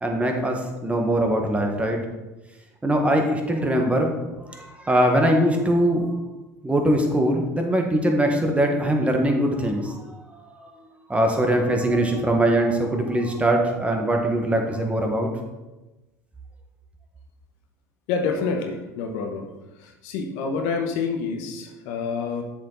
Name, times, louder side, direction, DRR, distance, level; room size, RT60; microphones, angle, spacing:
voice 1, 0.0-2.0 2.8-6.2 6.6-15.3, right 1 dB, 15° right, 2 dB, 1.6 m, -22 dB
voice 2, 18.1-19.5 20.0-22.4, left 5 dB, 70° left, 4 dB, 1.2 m, -27 dB
7.3 x 6.8 x 4.0 m, 1.1 s
hypercardioid pair, 85°, 9 cm